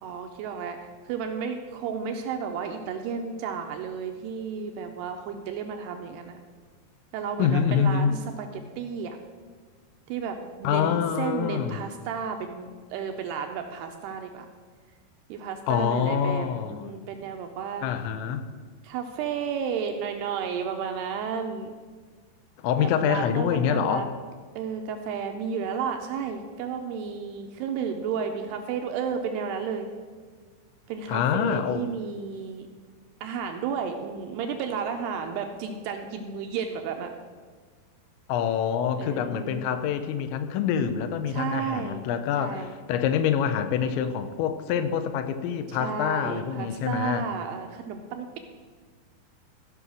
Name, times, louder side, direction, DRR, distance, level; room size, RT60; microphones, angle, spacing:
voice 1, 0.0-6.4 7.1-9.2 10.1-14.5 15.3-17.9 18.8-21.7 22.8-24.1 24.6-29.9 30.9-32.7 33.2-37.1 39.0-39.9 41.3-42.1 42.4-42.7 45.7-48.4, right 6 dB, 80° right, 5 dB, 2.4 m, -32 dB
voice 2, 7.4-8.1 10.6-11.8 15.7-17.0 17.8-18.5 22.6-24.1 31.1-31.9 38.3-47.3, left 8 dB, 90° left, 9 dB, 3.1 m, -26 dB
15.0 x 5.5 x 6.2 m, 1.5 s
omnidirectional pair, 5.1 m